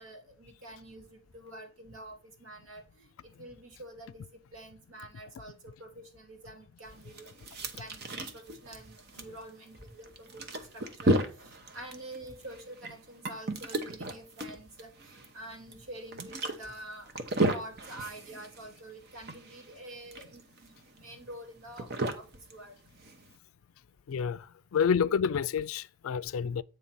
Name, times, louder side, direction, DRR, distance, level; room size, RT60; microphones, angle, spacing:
voice 1, 0.0-4.2 4.5-7.3 7.6-22.7, right 1 dB, 80° right, 2.3 m, -47 dB
sound 1, 6.8-23.4, right 1 dB, 50° right, 0.9 m, -35 dB
voice 2, 24.1-24.5 24.7-26.6, left 7 dB, 80° left, 0.4 m, -28 dB
8.7 x 3.3 x 5.5 m
head